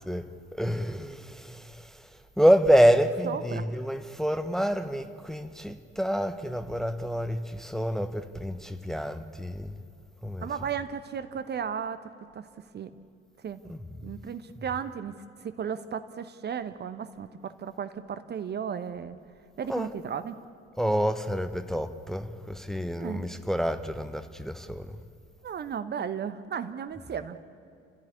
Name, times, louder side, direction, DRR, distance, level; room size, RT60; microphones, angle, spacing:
voice 1, 0.5-2.0 2.4-9.7 10.2-10.5 13.7-13.8 19.7-19.9 20.8-25.0, equal, ahead, 1.0 m, -27 dB
voice 2, 3.2-3.7 10.4-12.9 13.4-13.6 14.0-19.2 19.6-20.4 23.0-23.3 25.4-27.4, right 7 dB, 30° right, 1.0 m, -35 dB
29.0 x 15.0 x 8.4 m
figure-of-eight pair, 60°, 34 cm